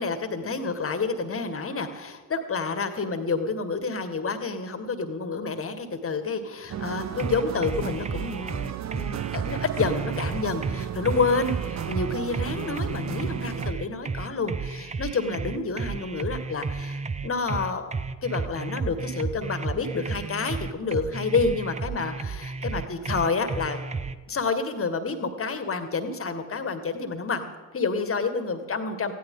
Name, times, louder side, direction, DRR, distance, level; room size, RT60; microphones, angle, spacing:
voice 1, 0.0-17.8 18.2-23.8 24.3-27.5 27.7-29.1, left 4 dB, 30° left, 9 dB, 1.9 m, -29 dB
sound 1, 6.7-13.7, right 10 dB, 40° right, 0.9 m, -34 dB
sound 2, 7.2-24.2, right 4 dB, 15° right, 0.7 m, -32 dB
18.5 x 16.0 x 3.9 m, 1.3 s
figure-of-eight pair, 55°, 43 cm